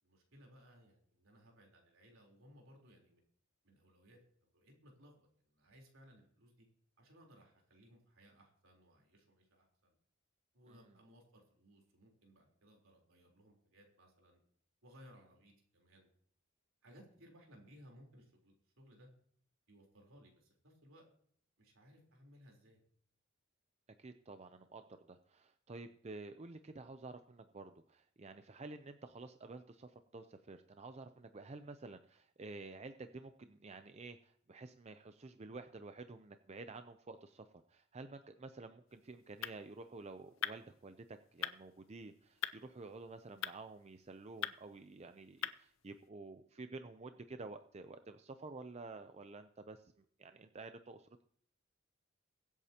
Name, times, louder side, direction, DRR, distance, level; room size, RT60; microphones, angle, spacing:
voice 1, 0.0-3.2 3.6-6.7 7.0-9.9 10.5-14.4 14.8-16.1 16.8-19.1 19.7-21.0 21.6-22.8, equal, 75° right, 0 dB, 3.8 m, -62 dB
voice 2, 24.0-51.1, right 3 dB, 30° right, 9 dB, 0.5 m, -51 dB
sound 1, 38.9-46.1, left 10 dB, 70° left, 0.6 m, -46 dB
23.0 x 8.3 x 2.9 m, 0.62 s
head